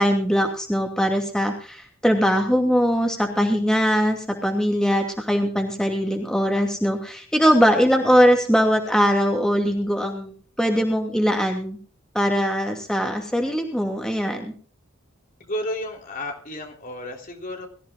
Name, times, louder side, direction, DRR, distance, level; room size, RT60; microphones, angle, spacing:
voice 1, 0.0-11.8 12.1-14.5, equal, 5° left, 2 dB, 2.6 m, -21 dB
voice 2, 15.4-17.7, left 1 dB, 40° left, 2 dB, 3.4 m, -32 dB
23.5 x 14.5 x 2.4 m, 0.42 s
head